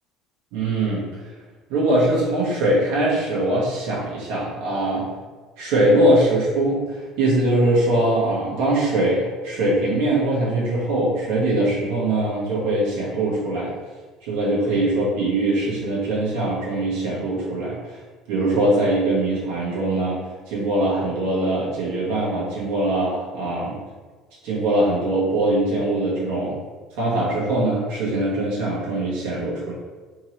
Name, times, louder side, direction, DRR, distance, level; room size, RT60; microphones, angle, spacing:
voice 1, 0.5-1.1 1.7-5.1 5.6-13.7 14.2-18.0 18.3-20.2 20.5-23.8 24.4-26.6 27.0-29.7, right 1 dB, 85° right, -7 dB, 1.3 m, -22 dB
3.6 x 2.9 x 3.0 m, 1.4 s
cardioid pair, 145°, 0 cm